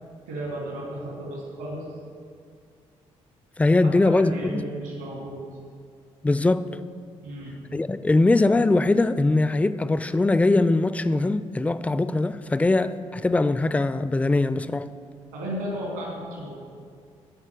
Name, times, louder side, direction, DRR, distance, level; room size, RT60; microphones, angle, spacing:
voice 1, 0.3-2.0 3.8-5.4 7.2-7.6 15.3-16.6, right 1 dB, 85° right, 2.3 m, -34 dB
voice 2, 3.6-4.6 6.2-6.7 7.7-14.9, left 2 dB, 10° left, 0.3 m, -21 dB
11.5 x 4.4 x 6.5 m
figure-of-eight pair, 40°, 16 cm